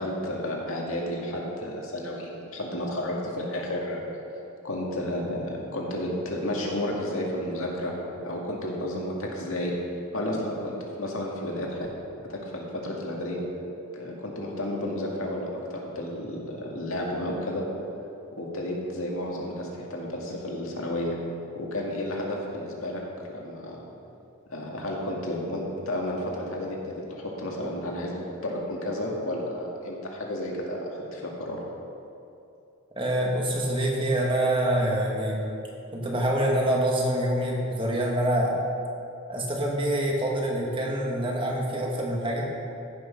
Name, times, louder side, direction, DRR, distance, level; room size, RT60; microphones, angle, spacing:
voice 1, 0.0-4.0 4.6-7.9 8.2-9.7 10.1-11.9 12.3-13.4 13.9-17.6 18.3-21.2 21.5-23.0 23.3-23.8 24.5-31.6, left 1 dB, 70° left, -2 dB, 2.1 m, -32 dB
voice 2, 33.0-35.4 35.9-38.6 39.3-42.4, right 1 dB, 25° right, -2 dB, 1.6 m, -26 dB
15.0 x 6.3 x 5.8 m, 2.7 s
head